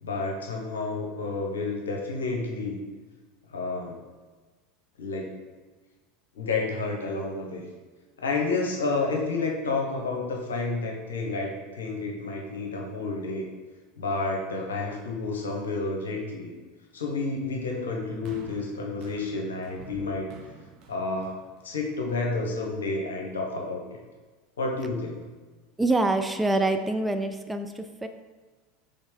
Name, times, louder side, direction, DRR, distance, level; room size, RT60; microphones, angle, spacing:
voice 1, 0.0-2.8 3.5-4.0 5.0-5.3 6.4-7.7 8.2-13.5 14.0-16.5 16.9-20.3 20.9-21.3 21.6-24.0 24.6-25.3, left 3 dB, 75° left, 0 dB, 0.9 m, -30 dB
sound 1, 18.2-22.6 23.4-23.5, right 5 dB, 45° right, 0.9 m, -49 dB
voice 2, 25.8-28.1, right 2 dB, 10° right, 7 dB, 0.3 m, -25 dB
4.2 x 3.4 x 3.7 m, 1.3 s
figure-of-eight pair, 80°, 0 cm